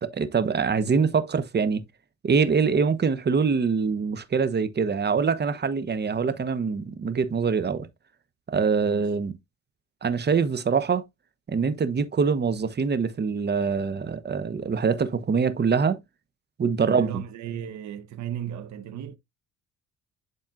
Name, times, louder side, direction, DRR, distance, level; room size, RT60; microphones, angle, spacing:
voice 1, 0.0-1.8 2.2-7.9 8.5-9.3 10.0-11.0 11.5-16.0 16.6-17.2, right 5 dB, 35° right, 1.1 m, -24 dB
voice 2, 16.8-19.2, right 10 dB, 70° right, 1.1 m, -35 dB
11.0 x 4.2 x 2.5 m
cardioid pair, 85°, 29 cm